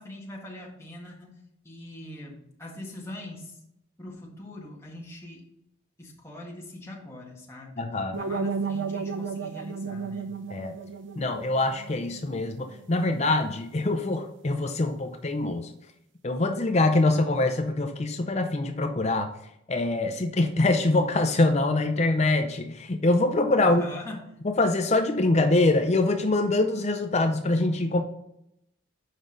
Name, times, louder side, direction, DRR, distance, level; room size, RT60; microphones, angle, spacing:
voice 1, 0.0-1.4 1.6-3.6 4.0-5.5 6.0-7.8 8.1-10.3 23.6-24.3, left 1 dB, 15° left, -3 dB, 1.6 m, -42 dB
voice 2, 7.8-8.2 10.5-10.7 11.2-15.7 16.2-19.3 19.7-23.8 24.4-28.0, left 2 dB, 30° left, 6 dB, 0.5 m, -24 dB
sound 1, 8.1-13.1, right 5 dB, 60° right, 0.5 m, -34 dB
8.1 x 5.2 x 3.9 m, 0.79 s
head